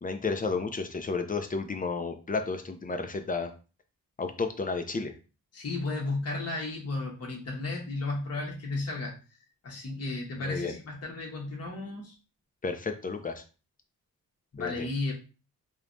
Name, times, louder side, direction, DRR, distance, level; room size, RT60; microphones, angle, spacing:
voice 1, 0.0-3.5 4.2-5.2 10.4-10.8 12.6-13.4 14.6-14.9, left 4 dB, 25° left, 7 dB, 0.4 m, -32 dB
voice 2, 5.5-12.1 14.5-15.1, left 2 dB, 45° left, -2 dB, 0.9 m, -34 dB
3.2 x 2.2 x 2.5 m, 0.33 s
cardioid pair, 100°, 35 cm